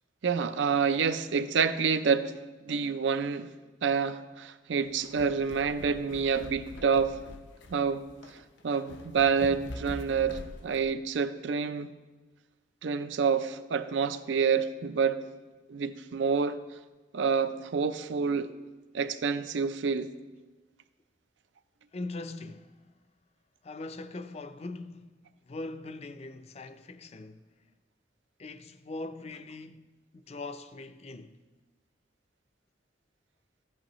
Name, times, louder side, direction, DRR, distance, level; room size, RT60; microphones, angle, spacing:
voice 1, 0.2-2.3 2.7-3.5 3.8-7.2 7.7-8.1 8.6-11.9 12.8-15.2 15.7-16.6 17.1-18.5 18.9-20.1, right 6 dB, 85° right, 0.5 m, -28 dB
sound 1, 4.9-10.9, left 1 dB, 90° left, 0.7 m, -44 dB
voice 2, 21.9-22.7 23.6-25.2 25.5-27.4 28.4-29.9 30.1-31.4, left 2 dB, 35° left, 0.4 m, -41 dB
14.0 x 8.6 x 3.0 m
head